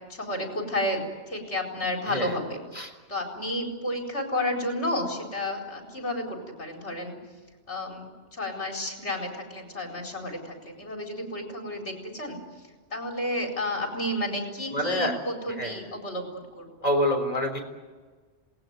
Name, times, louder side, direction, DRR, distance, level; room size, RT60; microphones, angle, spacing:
voice 1, 0.1-7.2 7.7-12.4 12.9-16.7, left 1 dB, 75° left, 1 dB, 4.9 m, -31 dB
voice 2, 14.7-15.1 15.6-15.7 16.8-17.6, left 1 dB, 35° left, 3 dB, 3.8 m, -26 dB
27.0 x 19.5 x 9.1 m, 1.4 s
omnidirectional pair, 1.2 m